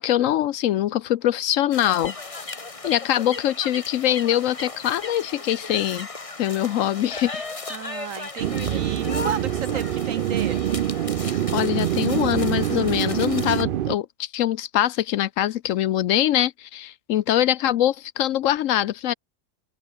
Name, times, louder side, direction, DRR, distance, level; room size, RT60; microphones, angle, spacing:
voice 1, 0.0-2.5 2.8-6.1 6.4-7.4 11.2-19.1, left 12 dB, 70° left, 0.9 m, -23 dB
sound 1, 1.7-13.6, left 3 dB, 25° left, 1.5 m, -36 dB
voice 2, 7.7-10.6, right 8 dB, 65° right, 1.4 m, -33 dB
sound 2, 8.4-14.0, right 11 dB, 80° right, 0.4 m, -25 dB
open air
omnidirectional pair, 1.5 m